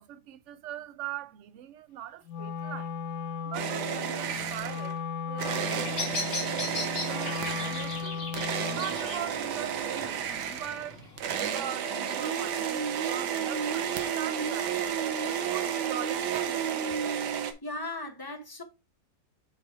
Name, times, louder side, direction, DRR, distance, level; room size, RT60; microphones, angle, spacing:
voice 1, 0.0-2.9 3.4-6.0 6.3-8.3 8.7-11.1 11.3-14.8 15.2-17.0, right 11 dB, 65° right, 0.7 m, -41 dB
Wind instrument woodwind instrument, 2.3-9.0, left 5 dB, 90° left, 1.3 m, -36 dB
sound 1, 3.5-5.0 5.4-17.5, right 8 dB, 90° right, 1.4 m, -32 dB
Bird vocalization bird call bird song, 5.4-11.4, left 3 dB, 40° left, 1.8 m, -39 dB
voice 2, 17.6-18.6, left 2 dB, 15° left, 0.8 m, -37 dB
7.7 x 3.4 x 4.7 m
omnidirectional pair, 1.7 m